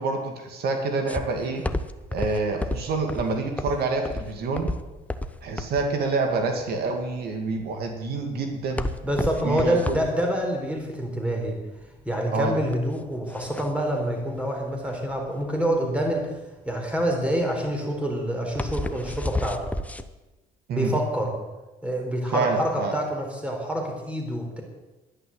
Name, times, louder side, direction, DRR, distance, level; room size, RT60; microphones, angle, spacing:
voice 1, 0.0-1.6 2.1-4.7 5.4-8.8 9.4-10.0 12.3-12.5 20.7-20.9 22.3-22.9, right 3 dB, 70° right, 4 dB, 2.2 m, -27 dB
sound 1, 1.1-20.0, left 1 dB, 10° left, 0.8 m, -33 dB
voice 2, 9.0-11.6 12.0-16.3 16.7-19.6 20.7-21.3 21.8-24.6, right 1 dB, 5° right, 1 dB, 4.1 m, -27 dB
11.0 x 11.0 x 7.9 m, 1.1 s
cardioid pair, 110°, 17 cm